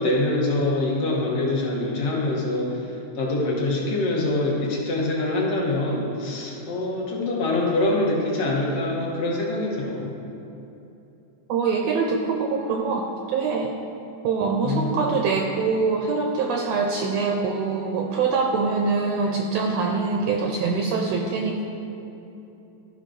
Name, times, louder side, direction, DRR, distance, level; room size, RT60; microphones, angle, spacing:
voice 1, 0.0-10.1 14.6-15.2, left 2 dB, 65° left, -3 dB, 2.1 m, -25 dB
voice 2, 11.5-13.7 14.2-21.6, right 4 dB, 80° right, 2 dB, 1.5 m, -24 dB
13.5 x 5.3 x 3.8 m, 2.9 s
omnidirectional pair, 3.4 m